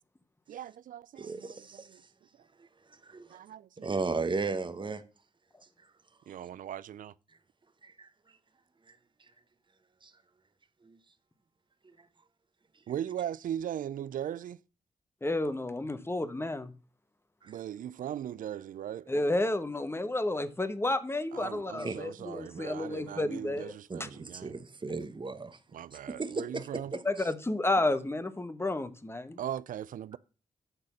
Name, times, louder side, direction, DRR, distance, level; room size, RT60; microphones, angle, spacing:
voice 1, 0.5-2.0 3.3-4.0 6.3-7.1 12.9-14.6 17.4-19.1 21.3-24.5 25.7-26.9 29.4-30.2, right 10 dB, 75° right, 0.4 m, -39 dB
voice 2, 1.2-1.9 2.6-3.4 3.8-5.0 7.8-8.1 8.9-9.0 10.0-10.1 10.8-11.0 17.4-17.5 21.8-22.0 23.9-25.6 26.1-27.3, right 4 dB, 35° right, 1.1 m, -36 dB
voice 3, 15.2-16.7 19.1-23.7 24.0-24.1 27.0-29.4, left 2 dB, 15° left, 1.1 m, -31 dB
9.1 x 4.0 x 6.9 m
cardioid pair, 55°, 14 cm